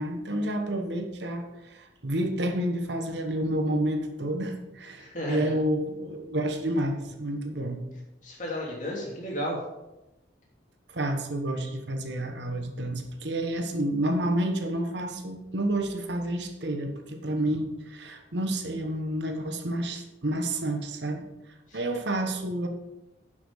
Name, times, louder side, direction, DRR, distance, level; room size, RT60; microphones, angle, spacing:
voice 1, 0.0-7.8 10.9-21.2 21.7-22.7, right 1 dB, 65° right, 5 dB, 1.1 m, -29 dB
voice 2, 5.0-5.5 8.2-9.6 21.7-21.9, equal, 40° left, -3 dB, 2.9 m, -33 dB
10.5 x 6.0 x 4.8 m, 0.96 s
head